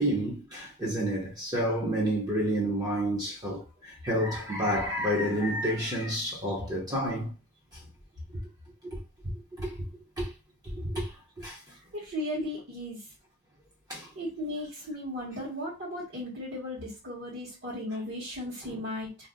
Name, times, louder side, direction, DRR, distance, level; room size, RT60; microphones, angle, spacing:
voice 1, 0.0-7.3 8.8-9.9 10.2-10.3 10.6-11.6 13.9-14.1, equal, 20° right, 0.8 m, -30 dB
voice 2, 11.9-13.1 14.1-19.3, left 1 dB, 55° right, 1.2 m, -36 dB
2.7 x 2.2 x 3.6 m
head